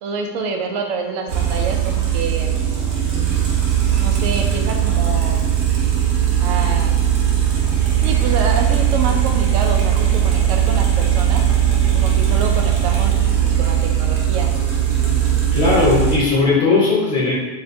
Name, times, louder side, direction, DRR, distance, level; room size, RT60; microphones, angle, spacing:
voice 1, 0.0-2.6 3.0-3.5 4.0-5.4 6.4-7.1 8.0-11.5 11.9-13.2 13.4-14.5, right 4 dB, 70° right, 3 dB, 0.8 m, -27 dB
sound 1, 1.3-16.2, right 9 dB, 90° right, 1.3 m, -18 dB
voice 2, 15.5-17.3, left 3 dB, 30° left, -6 dB, 1.0 m, -17 dB
4.6 x 2.2 x 4.2 m, 1.2 s
omnidirectional pair, 1.7 m